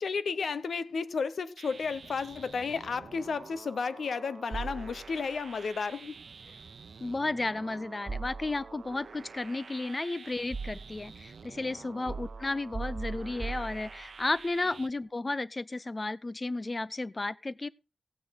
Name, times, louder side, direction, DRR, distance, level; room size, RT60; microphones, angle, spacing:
voice 1, 0.0-6.2 6.5-6.6 12.0-12.2, left 5 dB, 75° left, 0.8 m, -33 dB
sound 1, 1.6-14.9, right 5 dB, 65° right, 0.9 m, -49 dB
sound 2, 4.5-5.4 8.1-8.9 9.8-11.2 12.1-14.3, right 4 dB, 25° right, 1.9 m, -39 dB
voice 2, 7.0-17.7, left 2 dB, 25° left, 0.5 m, -33 dB
16.0 x 9.0 x 4.1 m
wide cardioid pair, 165°, 0 cm